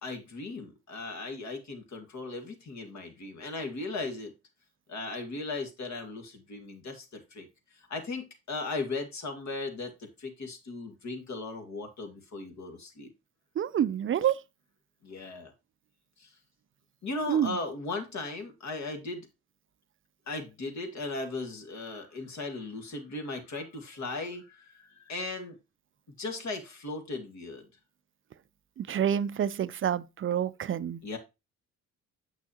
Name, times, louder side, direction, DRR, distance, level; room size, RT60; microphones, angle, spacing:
voice 1, 0.0-4.3 4.9-7.5 7.7-13.1 15.0-15.5 16.2-16.3 17.0-19.3 20.3-25.6 26.2-27.7 31.0-31.2, left 3 dB, 50° left, 2.1 m, -37 dB
voice 2, 13.6-14.4 17.3-17.6 28.8-31.0, right 9 dB, 35° right, 0.5 m, -28 dB
7.3 x 6.1 x 2.9 m
supercardioid pair, 70°, 35 cm